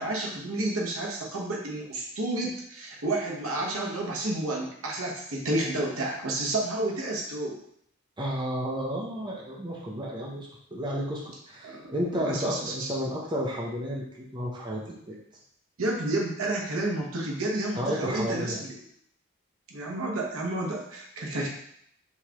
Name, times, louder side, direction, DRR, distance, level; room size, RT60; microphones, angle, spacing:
voice 1, 0.0-7.6 11.6-12.9 15.8-18.7 19.7-21.5, right 2 dB, 85° right, -2 dB, 1.1 m, -30 dB
voice 2, 8.2-11.2 11.5-15.2 17.8-18.6, equal, 20° right, -3 dB, 0.7 m, -32 dB
4.6 x 3.5 x 2.9 m, 0.70 s
head